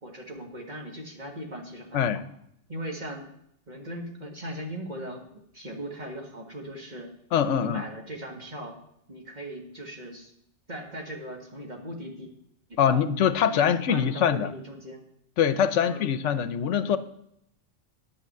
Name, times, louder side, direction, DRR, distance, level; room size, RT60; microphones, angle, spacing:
voice 1, 0.0-2.2 2.7-3.3 3.7-5.3 5.5-7.1 7.5-8.8 9.1-10.3 10.7-12.3 12.7-13.1 13.5-15.0 15.8-16.1, right 1 dB, 40° right, 1 dB, 2.0 m, -39 dB
voice 2, 7.3-7.8 12.8-14.5 15.4-17.0, left 8 dB, 80° left, 13 dB, 1.0 m, -23 dB
9.9 x 5.8 x 7.7 m, 0.74 s
omnidirectional pair, 1.2 m